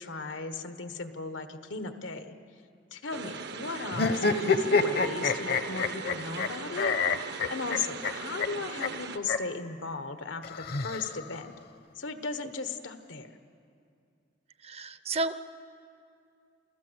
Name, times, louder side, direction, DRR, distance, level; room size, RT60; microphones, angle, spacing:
voice 1, 0.0-2.3 2.9-11.5 11.9-13.3, left 4 dB, 85° left, 9 dB, 1.2 m, -36 dB
sound 1, 3.1-9.2, right 5 dB, 60° right, 0.8 m, -40 dB
sound 2, 3.9-6.5 6.8-8.1 8.4-8.5 8.8-8.9 9.2-9.4 10.4-11.4, left 4 dB, 55° left, 0.8 m, -27 dB
voice 2, 14.6-15.4, right 2 dB, 35° right, 13 dB, 0.6 m, -31 dB
28.0 x 14.0 x 8.1 m, 2.4 s
head